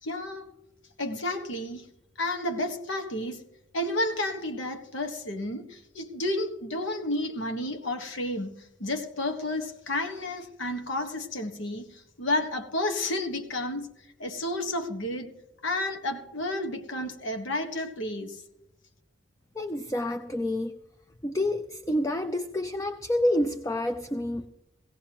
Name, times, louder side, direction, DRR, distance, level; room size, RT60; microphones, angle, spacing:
voice 1, 0.0-0.5 1.0-1.9 2.2-3.4 3.7-13.9 14.2-15.3 15.6-18.4, left 1 dB, 85° left, 1.5 m, -31 dB
voice 2, 19.6-20.8 21.2-24.5, left 1 dB, 15° left, 0.5 m, -28 dB
17.5 x 16.5 x 3.0 m
head